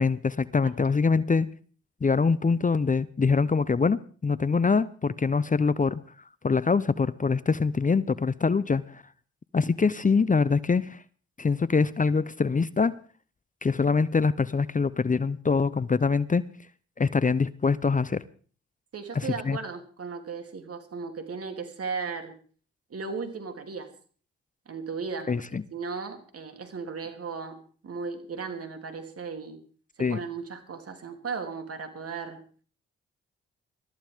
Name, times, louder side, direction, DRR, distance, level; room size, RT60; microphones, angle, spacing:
voice 1, 0.0-1.5 2.0-6.0 6.4-9.0 9.5-11.0 11.4-13.0 13.6-16.4 17.0-18.2 19.1-19.6 25.3-25.6 30.0-30.2, left 4 dB, 25° left, 17 dB, 0.8 m, -24 dB
voice 2, 18.9-22.4 22.9-23.9 24.6-25.3 25.7-29.6 30.0-32.4, right 5 dB, 55° right, 6 dB, 3.2 m, -36 dB
22.5 x 14.0 x 3.7 m, 0.41 s
hypercardioid pair, 45°, 29 cm